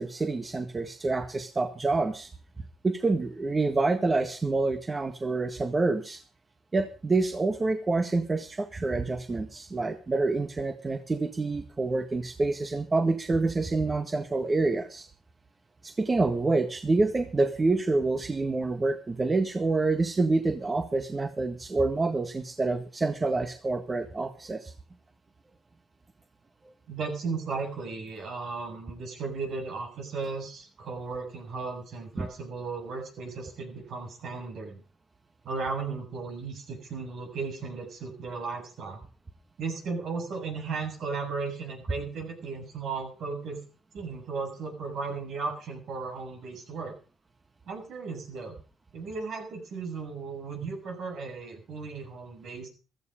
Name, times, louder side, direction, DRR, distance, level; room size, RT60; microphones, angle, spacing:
voice 1, 0.0-2.3 2.8-6.2 6.7-15.1 15.8-24.7 32.2-32.3, right 3 dB, 25° right, 7 dB, 1.7 m, -27 dB
voice 2, 26.9-34.8 35.4-39.0 39.6-43.6 43.9-46.9 47.7-48.6 48.9-52.7, right 4 dB, 70° right, 3 dB, 7.6 m, -35 dB
15.0 x 14.5 x 5.2 m, 0.37 s
cardioid pair, 90°, 0 cm